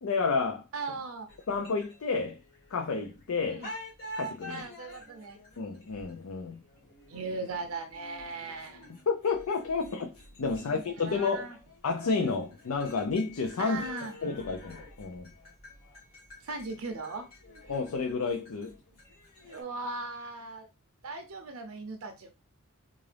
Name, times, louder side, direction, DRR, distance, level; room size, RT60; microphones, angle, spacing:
voice 1, 0.0-0.6 1.5-2.4 2.7-3.6 4.2-4.6 5.6-6.6 9.1-10.1 10.4-11.5 11.8-13.8 14.2-15.3 17.7-18.7, left 4 dB, 75° left, 0.5 m, -30 dB
voice 2, 0.7-1.3 3.5-3.7 4.5-5.4 7.1-8.9 10.5-11.6 13.6-14.1 16.4-17.2 19.5-20.7 21.0-22.3, right 3 dB, 70° right, 0.6 m, -38 dB
sound 1, 1.3-3.2 3.6-19.6, left 1 dB, 45° left, 2.0 m, -48 dB
3.8 x 2.4 x 3.3 m
head